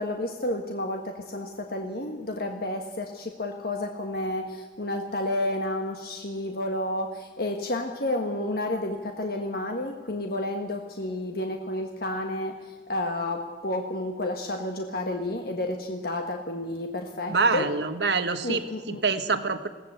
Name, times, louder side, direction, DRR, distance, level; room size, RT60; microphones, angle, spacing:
voice 1, 0.0-17.7 18.4-19.0, left 1 dB, 55° left, 3 dB, 1.6 m, -31 dB
voice 2, 17.3-19.7, right 4 dB, 70° right, 9 dB, 1.4 m, -26 dB
21.0 x 17.0 x 8.1 m, 1.4 s
head